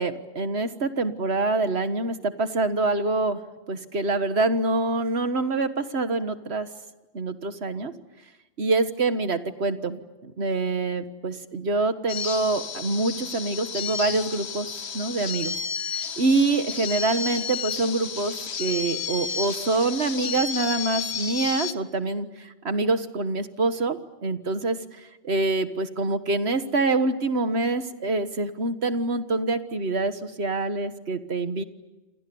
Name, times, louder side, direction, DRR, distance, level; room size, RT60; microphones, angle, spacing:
voice 1, 0.0-3.4 3.7-6.7 7.1-7.9 8.6-15.6 15.9-24.8 25.2-31.6, right 3 dB, 65° right, 10 dB, 1.8 m, -26 dB
sound 1, 12.1-21.7, left 6 dB, 65° left, 1.4 m, -32 dB
29.0 x 27.0 x 7.1 m, 1.1 s
omnidirectional pair, 1.2 m